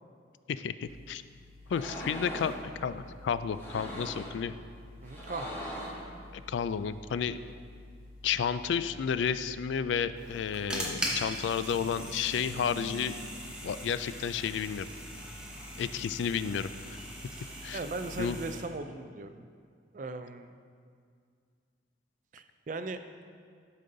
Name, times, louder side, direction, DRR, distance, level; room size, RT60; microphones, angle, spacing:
voice 1, 0.5-1.2 1.7-4.6 6.3-7.4 8.2-13.1 13.6-14.9 15.8-16.7 17.6-17.8 18.2-18.4, left 7 dB, 80° left, 13 dB, 0.3 m, -31 dB
sound 1, 0.8-18.1, left 2 dB, 50° left, 1.5 m, -51 dB
sound 2, 1.7-2.6 3.5-4.4 5.0-6.1, equal, 10° left, 1.5 m, -40 dB
voice 2, 5.0-5.6 11.0-11.2 17.7-19.5 19.9-20.6 22.3-23.0, right 3 dB, 45° right, 9 dB, 0.4 m, -38 dB
sound 3, 10.2-18.6, right 1 dB, 5° right, 0.9 m, -40 dB
12.0 x 5.4 x 3.8 m, 2.1 s
head